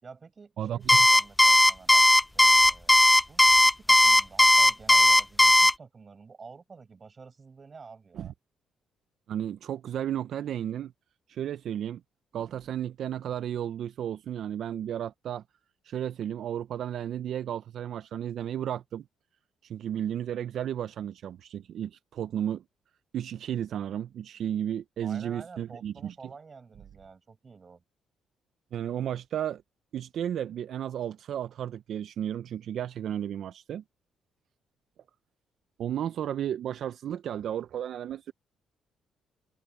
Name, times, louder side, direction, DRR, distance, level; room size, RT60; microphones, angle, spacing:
voice 1, 0.0-2.1 2.3-8.3 25.0-27.8, right 5 dB, 35° right, 6.5 m, -49 dB
voice 2, 0.6-1.0 8.1-8.3 9.3-10.9 11.3-12.0 12.3-15.4 15.8-19.0 19.6-22.6 23.1-26.2 28.7-29.6 29.9-33.8 35.8-38.3, right 10 dB, 70° right, 0.5 m, -33 dB
Alarm, 0.9-5.7, left 1 dB, 10° left, 0.4 m, -17 dB
cardioid pair, 90°, 0 cm